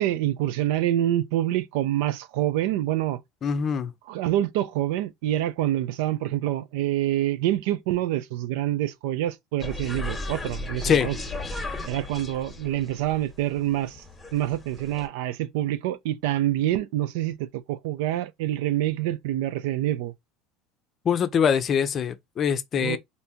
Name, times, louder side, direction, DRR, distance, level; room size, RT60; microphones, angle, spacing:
voice 1, 0.0-3.2 4.1-11.2 11.8-14.0 14.3-20.1 22.8-23.0, right 13 dB, 80° right, 0.4 m, -26 dB
voice 2, 3.4-3.9 10.8-11.1 21.0-23.0, left 7 dB, 35° left, 0.6 m, -23 dB
sound 1, 9.6-15.1, left 2 dB, 10° left, 1.1 m, -36 dB
3.5 x 2.6 x 2.8 m
supercardioid pair, 130°, 0 cm